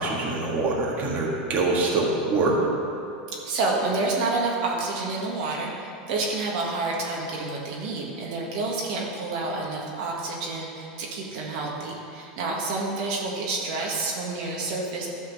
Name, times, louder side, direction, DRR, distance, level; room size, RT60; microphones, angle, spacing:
voice 1, 0.0-2.6, right 3 dB, 40° right, -3 dB, 1.8 m, -24 dB
voice 2, 3.4-15.1, right 3 dB, 65° right, -2 dB, 1.8 m, -29 dB
12.0 x 4.4 x 6.8 m, 2.5 s
supercardioid pair, 125°, 4 cm